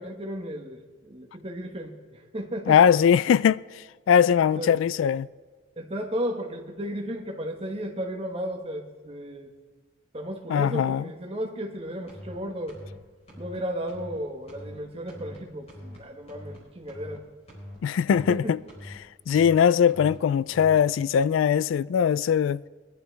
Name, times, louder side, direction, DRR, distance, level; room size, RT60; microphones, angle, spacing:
voice 1, 0.0-2.8 4.5-4.8 5.8-9.5 10.1-12.8 13.4-17.2 18.1-18.6, equal, 30° right, 1.4 m, -34 dB
voice 2, 2.7-5.3 10.5-11.0 17.8-18.6 19.3-22.6, left 8 dB, 75° left, 0.3 m, -21 dB
sound 1, 12.1-12.4 12.7-13.0 13.3-13.6 13.9-14.2 14.5-14.8 15.1-15.4 15.7-16.0 16.3-16.6 16.9-17.2 17.5-17.8 18.1-18.4 18.7-19.0 19.3-19.6 19.9-20.2 20.5-20.8, left 1 dB, 35° left, 4.6 m, -43 dB
22.0 x 11.5 x 3.4 m
head